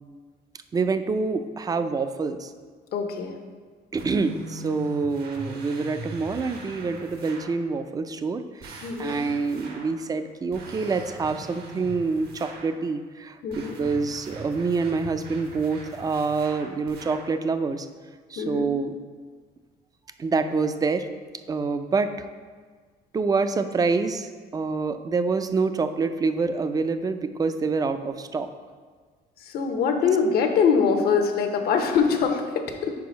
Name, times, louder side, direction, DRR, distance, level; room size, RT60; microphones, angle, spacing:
voice 1, 0.7-2.5 3.9-17.9 18.3-18.9 20.2-21.1 21.5-22.3 23.1-28.5, right 4 dB, 20° right, 10 dB, 0.3 m, -26 dB
voice 2, 2.9-3.4 8.8-9.2 13.4-13.8 18.4-18.7 29.4-32.9, left 6 dB, 65° left, 5 dB, 0.8 m, -23 dB
sound 1, 4.0-7.6 8.6-10.0 10.5-12.8 13.5-17.4, right 2 dB, 70° right, 1.0 m, -41 dB
4.7 x 4.7 x 5.1 m, 1.5 s
cardioid pair, 110°, 17 cm